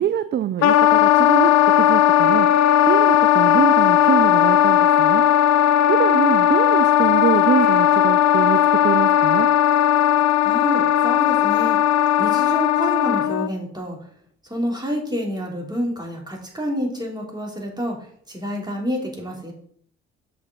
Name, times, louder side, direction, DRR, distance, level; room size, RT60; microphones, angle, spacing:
voice 1, 0.0-1.5 1.8-2.5 2.8-5.2 5.9-9.5, right 10 dB, 35° right, 13 dB, 0.4 m, -24 dB
Wind instrument woodwind instrument, 0.6-13.5, left 11 dB, 55° left, 0.5 m, -17 dB
voice 2, 10.4-11.8 12.2-14.0 14.4-19.5, equal, 15° right, -1 dB, 3.1 m, -28 dB
6.5 x 5.8 x 3.8 m, 0.62 s
hypercardioid pair, 45°, 32 cm